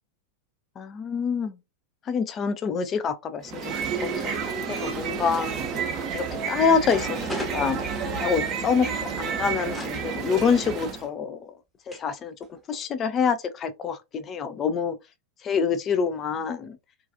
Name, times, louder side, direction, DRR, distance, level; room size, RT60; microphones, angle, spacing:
voice 1, 0.8-1.6 2.1-3.7 4.0-5.6 6.1-8.9 9.2-11.5 11.9-12.3 12.7-15.0 15.4-16.8, left 6 dB, 25° left, 0.4 m, -26 dB
sound 1, 3.4-11.1, right 5 dB, 35° right, 0.6 m, -30 dB
sound 2, 6.8-8.5 9.7-10.0 11.1-11.2 11.9-12.1 12.4-12.9, left 1 dB, 5° left, 0.7 m, -37 dB
2.5 x 2.3 x 2.5 m
figure-of-eight pair, 90°, 0 cm